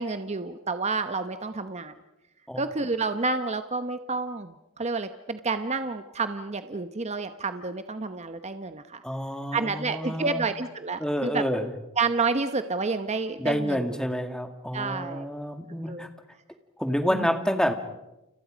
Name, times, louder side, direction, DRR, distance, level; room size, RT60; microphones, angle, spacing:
voice 1, 0.0-1.9 2.6-9.0 9.5-11.4 12.0-13.9 14.7-15.3 15.9-16.1 17.1-17.3, right 4 dB, 35° right, 9 dB, 1.0 m, -29 dB
voice 2, 9.0-10.4 11.0-11.7 13.4-16.1 16.8-17.7, equal, 5° left, 7 dB, 2.0 m, -28 dB
30.0 x 29.5 x 5.2 m, 0.95 s
head